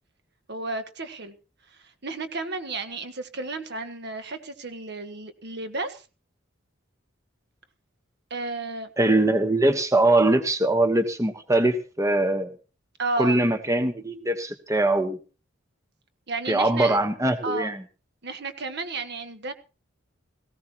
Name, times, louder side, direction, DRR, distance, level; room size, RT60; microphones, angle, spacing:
voice 1, 0.5-1.3 1.8-6.0 8.3-8.9 13.0-13.4 16.3-17.0 17.4-17.7 18.2-19.5, right 3 dB, 55° right, 9 dB, 1.4 m, -32 dB
voice 2, 9.0-12.5 13.2-15.2 16.5-17.8, right 2 dB, 15° right, 8 dB, 1.1 m, -22 dB
18.0 x 16.0 x 3.0 m, 0.34 s
head